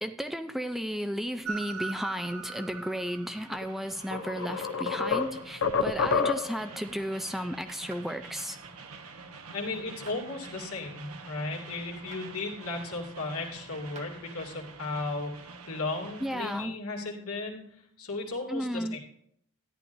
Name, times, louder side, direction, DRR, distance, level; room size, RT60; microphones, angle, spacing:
voice 1, 0.0-8.6 16.2-16.8 18.5-19.0, equal, ahead, 8 dB, 0.4 m, -34 dB
Train, 1.4-16.6, right 4 dB, 75° right, 1.0 m, -45 dB
sound 1, 3.5-3.6 4.1-6.7, left 5 dB, 60° left, 0.7 m, -28 dB
sound 2, 7.9-8.1 10.1-10.3 12.1-12.3 13.9-14.1, right 3 dB, 30° right, 1.1 m, -48 dB
voice 2, 9.5-15.4 15.7-17.6 18.0-19.0, left 3 dB, 80° left, -1 dB, 2.4 m, -35 dB
13.5 x 10.5 x 2.6 m, 0.69 s
head